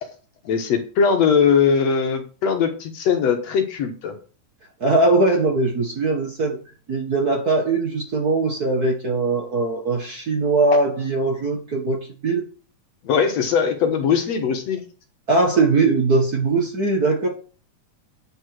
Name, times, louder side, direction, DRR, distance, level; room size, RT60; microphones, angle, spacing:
voice 1, 0.5-4.1 13.0-14.8, left 6 dB, 65° left, 5 dB, 2.3 m, -20 dB
voice 2, 4.8-6.6 6.9-12.0 12.2-12.4 15.3-17.3, right 3 dB, 40° right, 1 dB, 1.7 m, -20 dB
9.1 x 5.4 x 6.2 m, 0.38 s
omnidirectional pair, 3.4 m